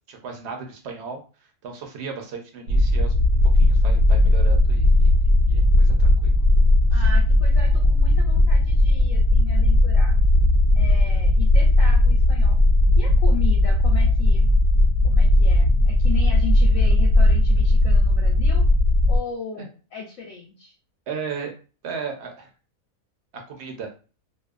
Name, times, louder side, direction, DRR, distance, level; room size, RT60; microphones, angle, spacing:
voice 1, 0.1-1.2 1.6-3.1 3.6-5.1 5.5-6.4 6.9-7.0 19.5-19.7 21.1-21.6 21.8-22.5 23.3-23.9, right 5 dB, 60° right, 3 dB, 0.7 m, -35 dB
sound 1, 2.7-19.2, left 1 dB, 85° right, 1.1 m, -17 dB
voice 2, 6.9-10.2 10.7-12.6 13.0-14.5 15.0-18.7 19.1-20.7, left 6 dB, 70° left, 1 dB, 0.9 m, -36 dB
2.6 x 2.2 x 2.3 m, 0.35 s
omnidirectional pair, 1.5 m